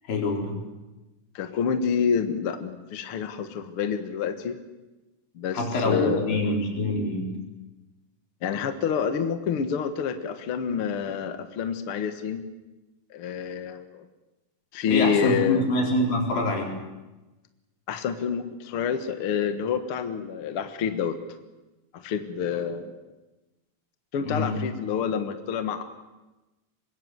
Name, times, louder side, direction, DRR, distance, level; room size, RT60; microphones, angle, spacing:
voice 1, 0.1-0.6 5.5-7.3 14.9-16.7 24.2-24.6, left 2 dB, 75° left, 0 dB, 6.1 m, -25 dB
voice 2, 1.3-4.6 5.3-6.5 8.4-12.4 13.1-14.1 14.7-15.6 17.9-21.2 21.9-23.0 24.1-25.8, left 7 dB, 50° left, 8 dB, 1.8 m, -28 dB
25.0 x 21.5 x 7.9 m, 1.1 s
omnidirectional pair, 4.0 m